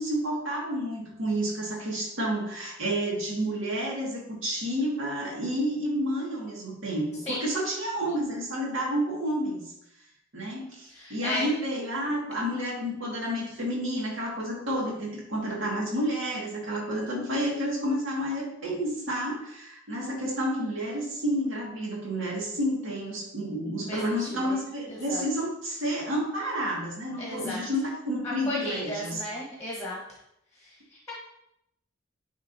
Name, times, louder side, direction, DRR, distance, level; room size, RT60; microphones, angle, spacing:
voice 1, 0.0-9.6 10.3-29.2, equal, 70° right, -3 dB, 1.9 m, -30 dB
voice 2, 10.9-11.5 23.8-24.6 24.9-25.2 27.2-27.6 28.2-30.0 30.5-31.1, left 1 dB, 15° left, -4 dB, 1.2 m, -35 dB
9.6 x 3.8 x 2.7 m, 0.79 s
head